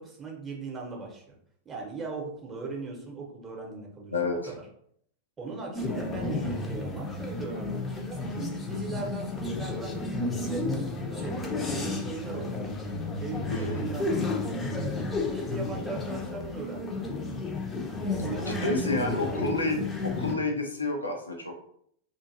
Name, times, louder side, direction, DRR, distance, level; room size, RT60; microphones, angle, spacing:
voice 1, 0.0-1.3 1.6-4.1 4.5-4.6 5.4-10.0 10.3-12.7 13.1-17.1 18.2-19.7, right 3 dB, 20° right, -1 dB, 0.8 m, -39 dB
voice 2, 4.1-4.5 13.5-13.8 18.5-21.6, left 2 dB, 80° left, 2 dB, 0.5 m, -30 dB
sound 1, 5.8-20.4, left 3 dB, 20° left, 0.5 m, -32 dB
2.6 x 2.5 x 2.6 m, 0.68 s
figure-of-eight pair, 90°, 0 cm